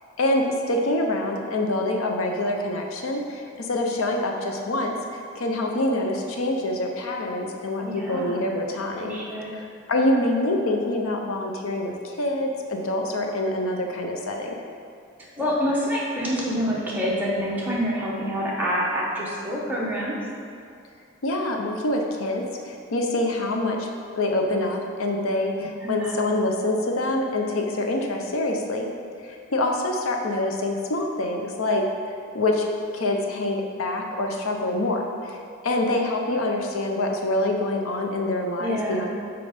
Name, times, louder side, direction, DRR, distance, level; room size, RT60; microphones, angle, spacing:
voice 1, 0.2-9.2 9.5-14.5 21.2-23.9 24.1-28.9 29.2-32.6 32.9-35.4 35.6-39.1, left 1 dB, 75° left, 2 dB, 0.6 m, -26 dB
voice 2, 7.8-8.4 9.0-9.6 15.4-20.1 25.8-26.1 38.6-39.1, equal, 10° right, -6 dB, 1.0 m, -27 dB
5.2 x 4.5 x 5.0 m, 2.4 s
head